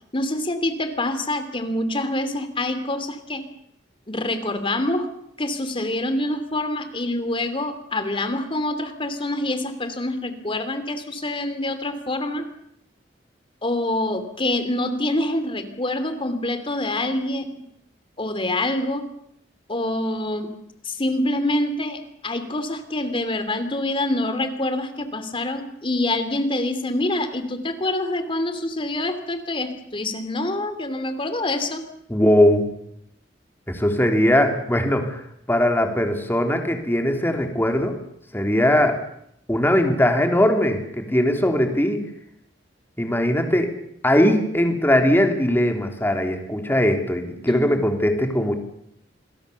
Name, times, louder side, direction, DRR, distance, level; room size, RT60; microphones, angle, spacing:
voice 1, 0.1-3.4 4.1-5.1 5.4-12.4 13.6-17.5 18.2-19.0 19.7-20.5 20.8-31.8 47.5-47.8, left 1 dB, 30° left, 9 dB, 3.0 m, -26 dB
voice 2, 32.1-32.7 33.7-35.2 35.5-38.0 38.3-39.0 39.5-42.1 43.0-43.7 44.0-48.5, left 1 dB, 10° left, 4 dB, 3.5 m, -20 dB
28.5 x 21.5 x 7.1 m, 0.73 s
head